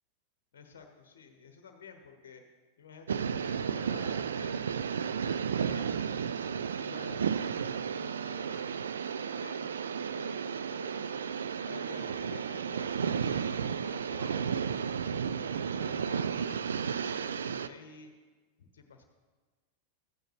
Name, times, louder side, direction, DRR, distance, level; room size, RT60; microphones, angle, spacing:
voice 1, 0.5-2.4 2.8-4.7 5.1-6.4 6.8-9.7 10.1-11.2 11.6-14.8 15.1-18.1 18.6-19.1, left 5 dB, 60° left, 6 dB, 0.9 m, -51 dB
sound 1, 3.1-17.7, right 7 dB, 65° right, 0.3 m, -33 dB
13.5 x 8.9 x 3.1 m, 1.4 s
figure-of-eight pair, 90°, 0 cm